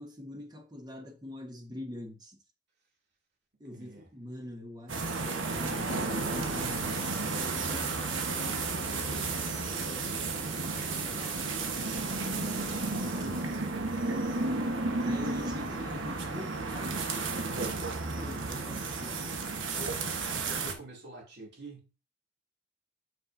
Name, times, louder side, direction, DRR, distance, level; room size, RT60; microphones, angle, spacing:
voice 1, 0.0-2.4 3.6-7.9 12.3-13.8 15.0-16.9 18.1-19.2, left 1 dB, 20° right, 1.2 m, -44 dB
voice 2, 3.6-4.1 8.6-11.7 15.2-15.4 17.4-17.8 19.7-21.9, right 2 dB, 60° right, 2.7 m, -49 dB
sound 1, 4.9-20.7, right 3 dB, 80° right, 1.2 m, -32 dB
sound 2, 5.2-13.3, left 2 dB, 30° left, 1.0 m, -49 dB
7.2 x 6.4 x 2.7 m
head